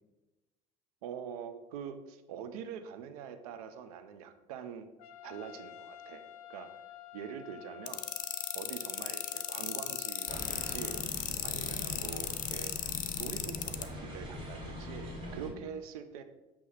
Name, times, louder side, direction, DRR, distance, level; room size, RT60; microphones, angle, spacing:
voice 1, 1.0-4.9 5.2-6.8 7.1-8.1 8.5-11.0 11.4-12.7 13.2-16.2, right 7 dB, 85° right, 9 dB, 0.7 m, -44 dB
Trumpet, 5.0-11.1, left 12 dB, 90° left, 0.4 m, -50 dB
sound 1, 7.9-13.8, left 11 dB, 45° left, 0.7 m, -35 dB
sound 2, 10.3-15.5, left 1 dB, 25° right, 2.4 m, -42 dB
8.4 x 3.0 x 5.6 m, 1.1 s
hypercardioid pair, 80°, 19 cm